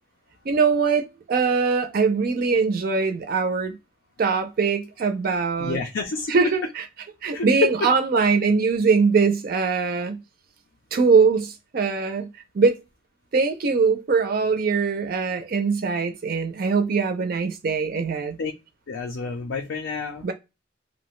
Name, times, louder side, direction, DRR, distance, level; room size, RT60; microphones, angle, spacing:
voice 1, 0.5-3.7 4.2-5.8 6.3-6.9 7.2-10.2 10.9-12.3 12.5-12.8 13.3-18.3 20.2-20.3, right 5 dB, 50° right, 0.4 m, -22 dB
voice 2, 5.6-6.5 7.3-7.7 18.4-18.5 18.9-20.3, left 4 dB, 75° left, 0.5 m, -28 dB
2.5 x 2.1 x 3.0 m
head